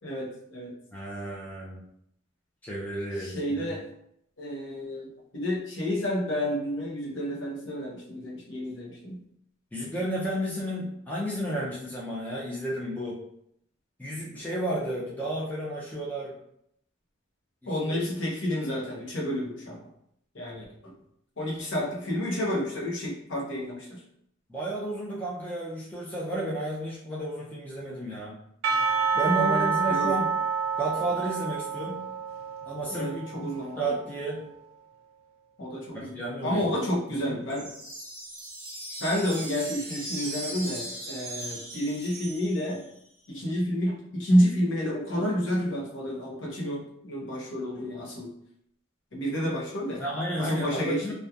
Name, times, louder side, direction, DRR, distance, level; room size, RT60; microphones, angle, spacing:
voice 1, 0.0-0.7 3.2-3.8 4.4-9.2 17.7-19.9 20.3-20.9 21.4-24.0 29.2-30.3 32.9-33.9 35.6-37.7 39.0-42.9 43.3-48.3 49.1-50.0 50.4-51.1, equal, 60° left, -3 dB, 0.7 m, -30 dB
voice 2, 0.9-1.8 2.6-3.8 9.7-13.2 14.0-16.3 17.9-18.0 24.5-28.3 29.1-30.3 30.8-32.0 32.7-34.4 35.9-36.7 37.2-37.4 50.0-51.1, right 1 dB, 10° left, -6 dB, 0.4 m, -32 dB
Percussion / Church bell, 28.6-33.9, right 5 dB, 90° right, 0.4 m, -28 dB
sound 1, 37.5-43.0, right 2 dB, 45° right, 1.0 m, -39 dB
2.8 x 2.2 x 2.3 m, 0.74 s
head